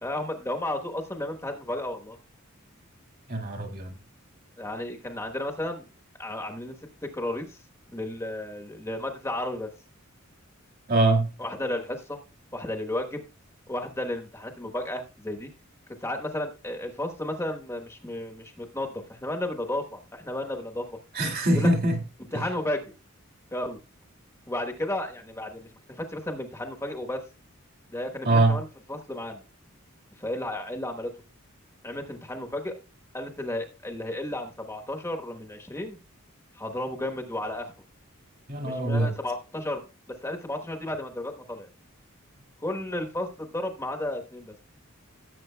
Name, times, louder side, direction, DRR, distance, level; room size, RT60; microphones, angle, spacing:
voice 1, 0.0-2.2 4.6-5.9 6.2-6.8 7.0-7.6 7.9-9.7 11.4-12.2 12.5-13.2 13.7-15.5 16.0-21.0 21.5-21.7 22.3-22.9 23.5-23.8 24.5-27.2 27.9-29.4 30.2-31.1 31.8-32.7 33.1-36.0 36.5-37.7 38.6-39.8 40.2-41.7 42.6-44.5, left 1 dB, 15° left, 1.1 m, -33 dB
voice 2, 3.3-3.9 10.9-11.3 21.1-22.0 22.3-22.4 28.2-28.6 38.5-39.1, right 2 dB, 45° right, 1.9 m, -23 dB
16.5 x 7.7 x 2.2 m
head